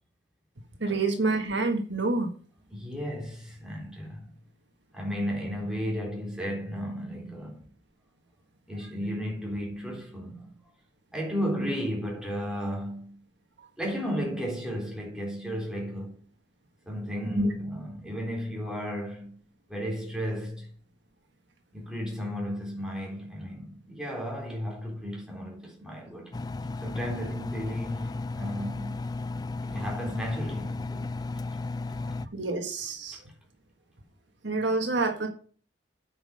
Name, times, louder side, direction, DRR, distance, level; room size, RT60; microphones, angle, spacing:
voice 1, 0.8-2.3 17.4-17.5 32.3-33.2 34.4-35.3, right 3 dB, 70° right, 1.6 m, -27 dB
voice 2, 2.7-4.2 4.9-7.6 8.7-10.5 11.1-13.2 13.8-16.2 16.9-19.3 19.7-20.7 21.7-26.4 26.8-29.0 29.6-31.0, equal, 5° right, 3.8 m, -34 dB
Engine, 26.3-32.3, left 3 dB, 20° left, 0.4 m, -34 dB
8.9 x 6.3 x 6.4 m
head